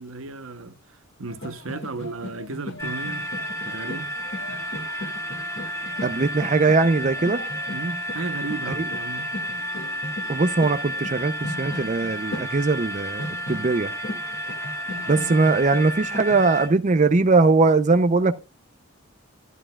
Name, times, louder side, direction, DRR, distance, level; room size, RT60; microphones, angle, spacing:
voice 1, 0.0-3.3 3.6-4.2 7.7-9.3, right 3 dB, 80° right, 1.0 m, -34 dB
sound 1, 1.3-16.6, left 1 dB, 60° left, 2.1 m, -38 dB
sound 2, 2.8-16.7, equal, 15° left, 3.5 m, -32 dB
voice 2, 6.0-7.4 10.3-13.9 15.1-18.3, right 3 dB, 35° right, 0.6 m, -20 dB
13.0 x 11.0 x 2.3 m
head